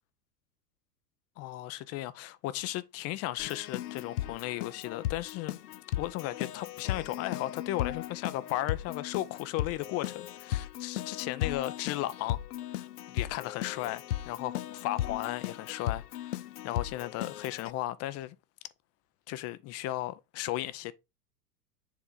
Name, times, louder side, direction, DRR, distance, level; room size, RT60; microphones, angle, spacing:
voice 1, 1.4-12.4 12.7-18.3 19.3-20.9, left 15 dB, 35° left, 0.5 m, -35 dB
Keyboard (musical), 3.4-17.7, left 13 dB, 85° left, 0.6 m, -36 dB
7.3 x 3.7 x 3.9 m
hypercardioid pair, 95°, 45 cm